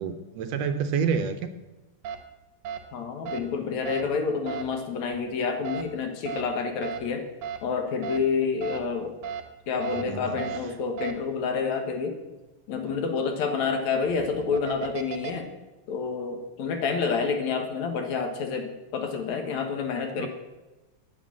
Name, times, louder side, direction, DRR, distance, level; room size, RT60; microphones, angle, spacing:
voice 1, 0.0-1.4 9.9-10.4 20.2-20.3, right 6 dB, 75° right, 8 dB, 1.8 m, -28 dB
sound 1, 2.0-2.2 2.7-2.8 3.3-3.4 3.9-4.0 4.5-4.6 5.6-5.8 6.3-6.4 6.8-7.0 7.4-7.6 8.0-8.2 8.6-8.8 9.2-9.4 9.8-10.0 10.4-10.6 11.0-11.1 14.0-15.3, right 8 dB, 90° right, 2.7 m, -34 dB
voice 2, 2.9-7.2 7.6-9.1 9.7-12.2 12.7-15.5 15.9-20.3, left 5 dB, 75° left, 5 dB, 2.7 m, -28 dB
9.9 x 9.1 x 7.4 m, 1.1 s
omnidirectional pair, 3.3 m